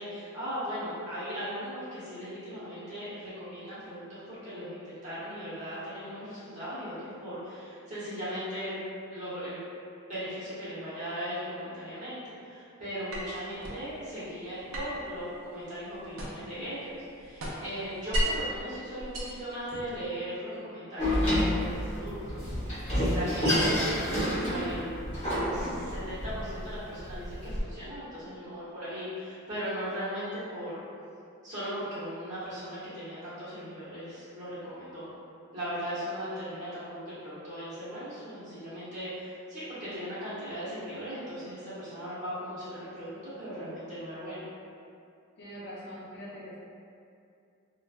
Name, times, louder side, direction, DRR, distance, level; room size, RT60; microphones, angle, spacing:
voice 1, 0.0-8.8 9.1-9.6 10.1-24.9 25.5-30.8 31.4-35.0 35.5-44.4, equal, 35° right, -13 dB, 1.1 m, -38 dB
sound 1, 13.1-13.8 14.7-16.6 16.9-18.5 19.0-20.1, equal, 70° right, 0.5 m, -34 dB
Door, 21.0-27.6, equal, 30° left, 0.9 m, -29 dB
voice 2, 45.4-46.6, equal, 50° left, -7 dB, 0.6 m, -43 dB
3.2 x 2.2 x 2.3 m, 2.5 s
head